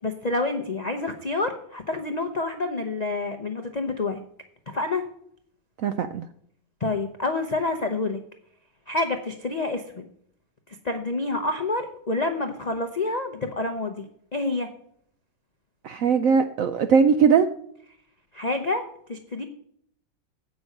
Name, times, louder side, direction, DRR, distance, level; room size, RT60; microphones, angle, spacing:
voice 1, 0.0-4.2 4.7-5.0 6.8-8.2 8.9-10.1 10.7-14.0 14.3-14.7 18.3-18.8 19.1-19.4, left 2 dB, 90° left, 5 dB, 0.3 m, -28 dB
voice 2, 5.8-6.3 15.8-17.5, right 6 dB, 80° right, 9 dB, 0.7 m, -20 dB
8.5 x 6.1 x 6.4 m, 0.67 s
omnidirectional pair, 2.0 m